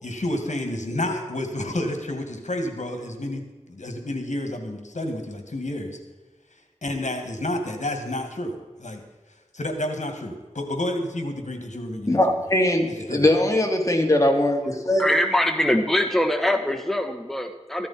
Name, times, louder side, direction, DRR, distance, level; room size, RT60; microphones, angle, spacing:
voice 1, 0.0-6.0 6.5-9.0 9.5-12.2 12.9-13.3, left 1 dB, 75° left, 5 dB, 2.0 m, -30 dB
voice 2, 12.1-15.1, left 1 dB, 25° left, 2 dB, 2.7 m, -21 dB
voice 3, 15.0-17.9, left 1 dB, ahead, 6 dB, 1.2 m, -23 dB
15.0 x 14.0 x 4.3 m, 1.3 s
wide cardioid pair, 40°, 12 cm